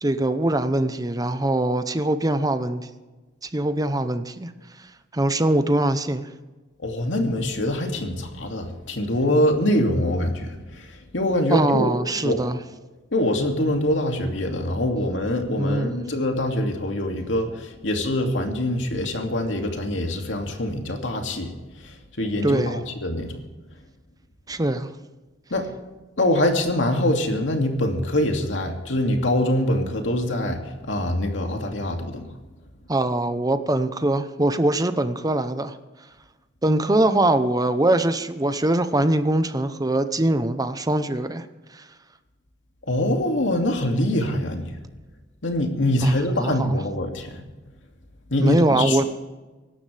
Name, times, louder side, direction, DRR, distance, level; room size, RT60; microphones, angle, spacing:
voice 1, 0.0-2.9 3.5-4.5 5.1-6.3 11.5-12.6 15.6-16.0 22.4-22.8 24.5-24.9 32.9-35.8 36.6-41.4 41.8-41.9 46.0-46.7 48.4-49.0, right 1 dB, 20° right, 0.8 m, -22 dB
voice 2, 6.8-12.0 12.2-12.4 13.1-21.5 21.8-23.3 25.5-25.7 26.2-32.2 42.9-44.7 45.4-47.4 48.3-49.1, left 1 dB, 90° left, 2.5 m, -24 dB
24.5 x 12.0 x 3.5 m
head